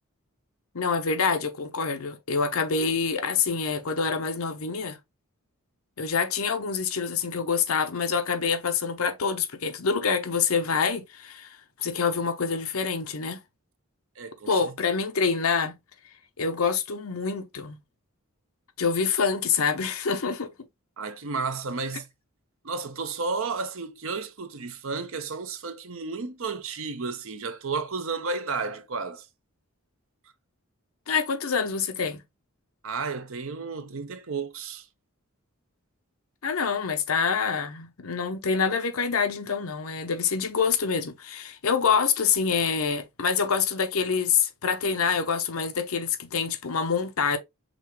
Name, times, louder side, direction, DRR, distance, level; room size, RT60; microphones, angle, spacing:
voice 1, 0.7-5.0 6.0-13.4 14.5-15.8 16.4-17.8 18.8-20.5 31.1-32.2 36.4-47.4, left 5 dB, 75° left, 0.8 m, -26 dB
voice 2, 14.2-14.7 21.0-22.1 22.6-29.3 32.8-34.9, right 4 dB, 65° right, 0.7 m, -32 dB
5.3 x 3.4 x 3.0 m
head